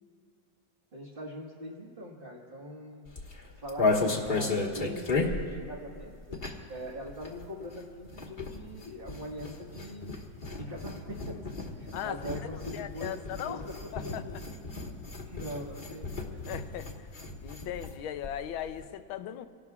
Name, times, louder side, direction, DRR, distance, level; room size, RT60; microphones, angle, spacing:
voice 1, 0.9-3.1 3.6-10.2 10.6-13.1 13.5-14.4 15.2-16.5, equal, 30° right, -4 dB, 1.6 m, -42 dB
sound 1, 3.1-6.8 7.0-18.0 18.2-18.3 18.5-18.9, left 3 dB, 30° left, 1.3 m, -34 dB
voice 2, 11.9-13.6 13.9-14.2 16.5-17.1 17.4-19.5, left 11 dB, 80° left, 10 dB, 1.5 m, -38 dB
28.0 x 18.0 x 2.4 m, 2.2 s
omnidirectional pair, 2.2 m